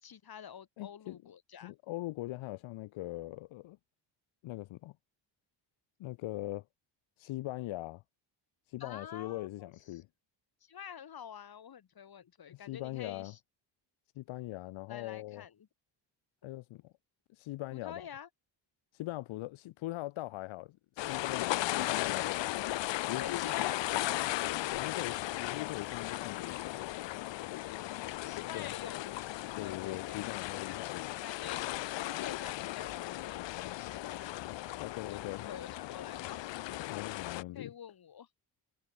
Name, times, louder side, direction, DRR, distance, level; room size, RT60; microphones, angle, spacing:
voice 1, 0.0-1.7 8.8-10.0 10.6-13.4 14.9-15.5 17.7-18.3 21.4-22.0 23.1-24.7 27.8-30.2 31.2-31.6 31.9-33.4 33.7-36.4 37.5-38.3, left 8 dB, 50° left, 5.1 m, -48 dB
voice 2, 0.8-1.2 1.6-3.8 4.4-4.9 6.0-6.6 7.2-8.0 8.7-10.1 12.5-13.3 14.1-15.5 16.4-16.9 17.3-18.0 18.9-22.6 23.1-23.5 24.7-27.0 28.5-28.7 29.6-31.1 34.5-35.5 36.9-37.7, left 17 dB, 90° left, 1.2 m, -41 dB
sound 1, 21.0-37.4, left 16 dB, 70° left, 0.8 m, -36 dB
cardioid pair, 110°, 46 cm